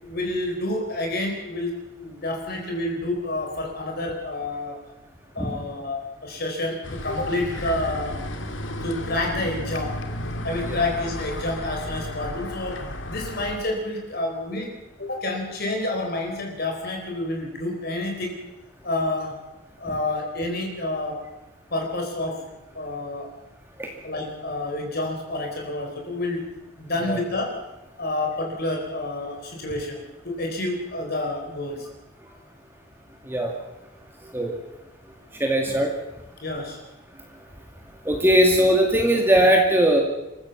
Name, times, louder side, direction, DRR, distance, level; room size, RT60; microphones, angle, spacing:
voice 1, 0.0-4.8 5.3-8.2 8.8-9.9 10.4-12.8 13.0-14.7 15.0-18.4 18.8-19.3 19.8-21.2 21.7-22.4 22.7-23.3 24.0-26.4 26.8-27.5 28.0-31.9 36.4-36.8, left 2 dB, 50° left, 2 dB, 4.3 m, -29 dB
sound 1, 6.8-13.6, left 1 dB, 65° left, 2.3 m, -33 dB
voice 2, 35.4-35.9 38.1-40.0, right 1 dB, 10° right, 2 dB, 2.1 m, -19 dB
26.5 x 15.0 x 7.2 m, 1.0 s
head